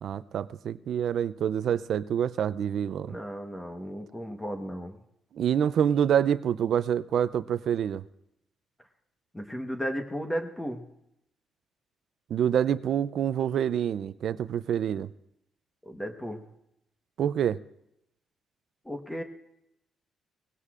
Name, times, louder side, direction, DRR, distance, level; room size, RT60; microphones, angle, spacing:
voice 1, 0.0-3.2 5.3-8.0 12.3-15.1 17.2-17.6, right 9 dB, 65° right, 15 dB, 0.4 m, -27 dB
voice 2, 3.0-5.0 9.3-10.9 15.9-16.5 18.8-19.2, equal, 10° left, 4 dB, 1.1 m, -35 dB
20.5 x 16.5 x 2.5 m, 0.81 s
cardioid pair, 90°, 0 cm